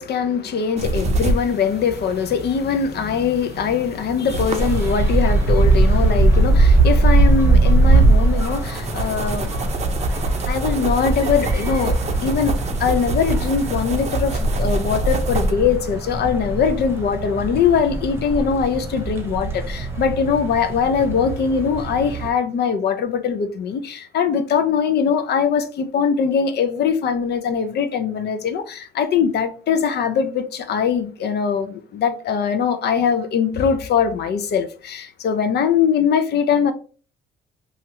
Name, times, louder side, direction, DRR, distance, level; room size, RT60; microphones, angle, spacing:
voice 1, 0.0-9.5 10.5-12.0 12.2-36.7, left 6 dB, 60° left, 0.5 m, -21 dB
sound 1, 0.8-15.5, right 2 dB, 35° right, 0.6 m, -27 dB
sound 2, 4.6-22.3, right 2 dB, 15° right, 1.0 m, -20 dB
2.7 x 2.4 x 3.0 m
supercardioid pair, 75°, 19 cm